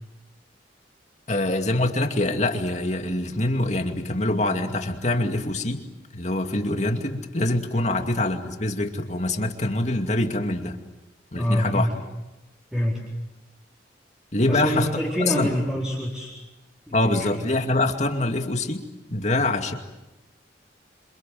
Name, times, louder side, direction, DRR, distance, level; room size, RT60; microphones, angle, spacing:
voice 1, 1.3-5.8 6.1-10.8 11.3-11.9 14.3-14.9 15.3-15.5 16.9-18.8 19.1-19.7, left 2 dB, 40° left, 5 dB, 2.4 m, -24 dB
voice 2, 11.3-11.9 12.7-13.0 14.4-16.3 16.9-17.3, equal, 5° right, -4 dB, 4.2 m, -26 dB
27.5 x 27.0 x 7.8 m, 1.0 s
head